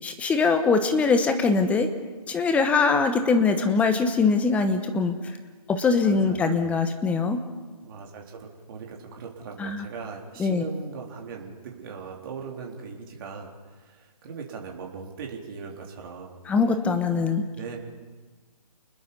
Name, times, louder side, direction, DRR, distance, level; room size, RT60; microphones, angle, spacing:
voice 1, 0.0-1.9 2.3-5.4 5.7-7.4 9.6-9.9 10.4-10.6 16.5-17.4, left 4 dB, 5° left, 7 dB, 1.1 m, -22 dB
voice 2, 6.0-6.7 7.8-16.4 17.5-17.8, right 5 dB, 35° right, 0 dB, 3.6 m, -39 dB
29.5 x 20.5 x 5.5 m, 1.3 s
figure-of-eight pair, 150°, 20 cm